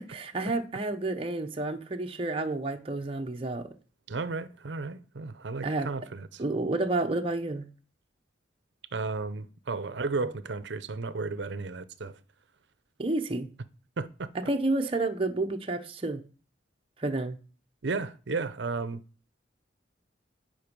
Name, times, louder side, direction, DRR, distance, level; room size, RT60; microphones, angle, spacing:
voice 1, 0.1-3.7 5.6-5.9 6.4-7.6 13.0-13.5 14.3-16.2 17.0-17.4, right 2 dB, 30° right, 0.8 m, -30 dB
voice 2, 4.1-6.4 8.9-12.2 14.0-14.3 17.8-19.0, right 3 dB, 65° right, 0.7 m, -33 dB
10.0 x 5.3 x 5.3 m
head